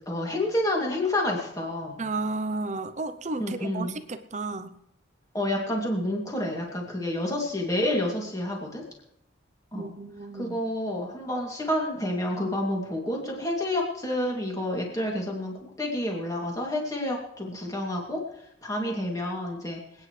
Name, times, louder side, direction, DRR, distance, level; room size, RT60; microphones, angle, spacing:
voice 1, 0.1-2.0 3.4-4.0 5.3-8.8 9.7-9.9 10.3-18.2 18.6-20.1, left 1 dB, 15° left, -1 dB, 2.7 m, -29 dB
voice 2, 2.0-4.7 9.7-10.6, right 3 dB, 35° right, 10 dB, 0.7 m, -33 dB
26.5 x 9.6 x 3.3 m, 0.79 s
head